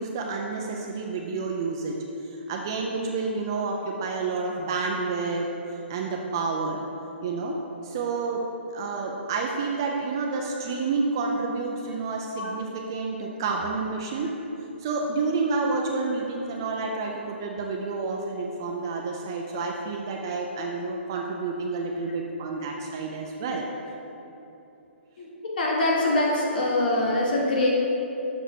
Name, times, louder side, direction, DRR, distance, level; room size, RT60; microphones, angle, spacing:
voice 1, 0.0-2.0 2.3-5.5 5.9-6.8 7.2-8.4 8.7-14.3 14.8-23.7 26.4-26.5, right 4 dB, 20° right, 0 dB, 0.3 m, -29 dB
voice 2, 25.6-27.7, left 1 dB, 45° left, -3 dB, 1.5 m, -24 dB
7.0 x 6.1 x 4.3 m, 3.0 s
hypercardioid pair, 175°, 7 cm